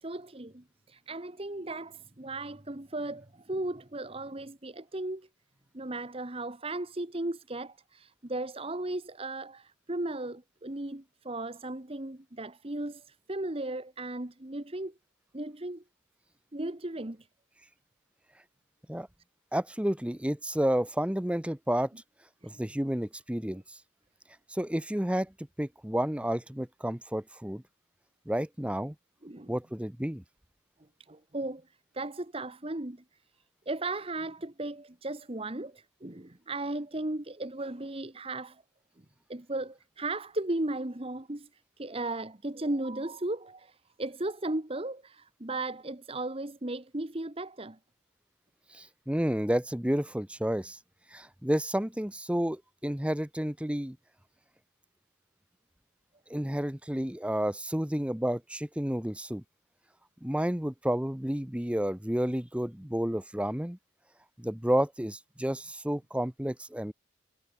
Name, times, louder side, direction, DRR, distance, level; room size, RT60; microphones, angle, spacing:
voice 1, 0.0-5.3 5.7-14.9 15.3-15.8 16.5-17.3 22.4-22.5 23.5-23.6 29.2-29.5 31.1-33.0 33.7-38.6 39.3-47.8, right 2 dB, 30° right, 1.2 m, -36 dB
voice 2, 19.5-21.9 22.4-23.8 24.5-25.3 25.6-27.6 28.3-28.9 29.5-30.2 48.7-50.8 51.1-54.0 56.3-59.4 60.2-63.8 64.4-66.9, equal, 5° right, 0.8 m, -31 dB
head